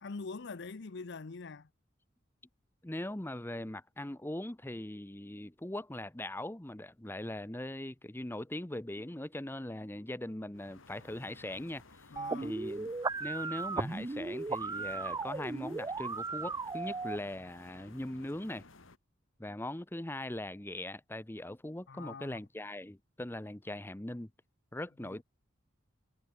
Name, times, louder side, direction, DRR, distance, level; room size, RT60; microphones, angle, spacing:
voice 1, 0.0-1.7 12.1-12.6 21.9-22.4 25.0-25.2, left 4 dB, 60° left, 0.7 m, -44 dB
voice 2, 2.8-12.0 12.4-12.9 13.2-18.6 19.4-24.3 24.7-25.2, left 1 dB, 10° left, 0.8 m, -40 dB
sound 1, 10.5-19.0, left 3 dB, 85° left, 2.3 m, -57 dB
sound 2, 12.2-17.2, right 3 dB, 20° right, 0.4 m, -36 dB
head